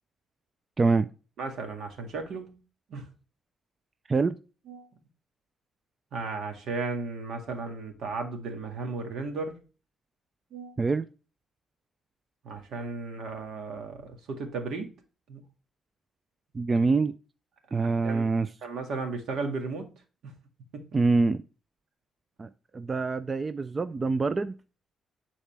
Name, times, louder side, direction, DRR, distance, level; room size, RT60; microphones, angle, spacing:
voice 1, 0.8-1.1 4.1-4.3 10.8-11.0 16.5-17.1 17.7-18.5 20.9-21.4 22.4-24.5, right 3 dB, 30° right, 13 dB, 0.4 m, -25 dB
voice 2, 1.4-2.6 2.9-3.0 4.7-4.9 6.1-9.6 10.5-10.8 12.4-14.9 15.3-15.4 17.7-18.3 18.6-19.9 20.2-20.3 20.7-20.8, right 3 dB, 70° right, 4 dB, 1.9 m, -35 dB
10.0 x 4.2 x 3.4 m, 0.33 s
cardioid pair, 90°, 0 cm